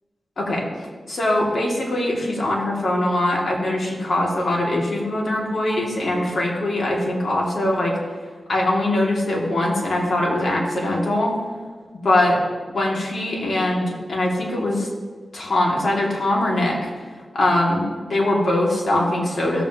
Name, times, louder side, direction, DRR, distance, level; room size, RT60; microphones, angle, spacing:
voice 1, 0.4-0.7 1.1-8.0 8.5-11.3 12.0-12.4 12.7-14.9 15.3-16.9 17.3-19.6, left 1 dB, 60° left, -2 dB, 2.5 m, -22 dB
17.0 x 7.1 x 3.0 m, 1.5 s
cardioid pair, 65°, 0 cm